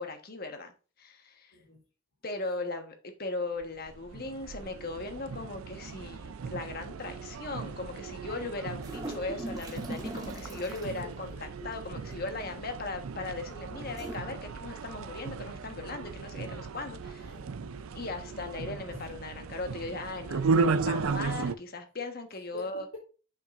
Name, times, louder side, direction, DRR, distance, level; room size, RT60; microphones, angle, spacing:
voice 1, 0.0-1.6 2.2-11.3 11.6-17.3 17.9-22.9, left 3 dB, 45° left, 6 dB, 1.3 m, -38 dB
voice 2, 1.5-1.8 10.8-11.8 13.8-14.0 17.2-17.9 18.9-19.1 22.5-23.0, left 2 dB, 70° left, -3 dB, 2.8 m, -48 dB
sound 1, 3.6-21.6, right 4 dB, 90° right, 0.5 m, -35 dB
sound 2, 8.7-11.0 12.3-12.7 13.9-14.2, right 1 dB, 15° right, 1.1 m, -40 dB
7.4 x 6.0 x 2.5 m, 0.35 s
head